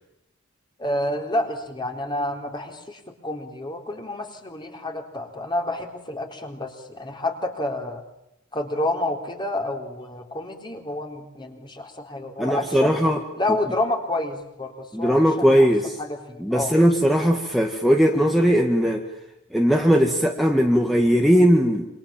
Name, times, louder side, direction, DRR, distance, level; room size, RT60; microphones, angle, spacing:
voice 1, 0.8-8.0 8.5-13.0 13.4-15.7 16.0-16.8, left 1 dB, 20° left, 4 dB, 4.1 m, -29 dB
voice 2, 12.4-13.2 14.9-16.0 16.4-19.0 19.5-21.9, equal, ahead, 2 dB, 2.0 m, -19 dB
28.0 x 26.5 x 7.3 m, 0.85 s
head